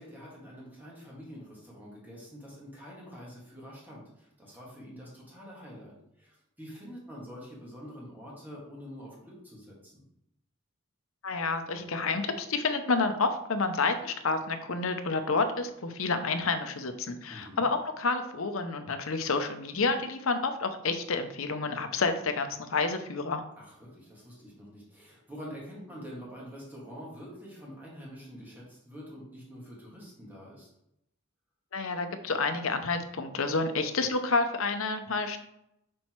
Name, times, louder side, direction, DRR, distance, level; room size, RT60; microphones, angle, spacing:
voice 1, 0.0-10.0 17.3-17.7 23.6-30.7, equal, 10° right, -5 dB, 2.0 m, -46 dB
voice 2, 11.2-23.4 31.7-35.4, left 3 dB, 65° left, 8 dB, 0.7 m, -29 dB
6.2 x 4.2 x 4.6 m, 0.80 s
head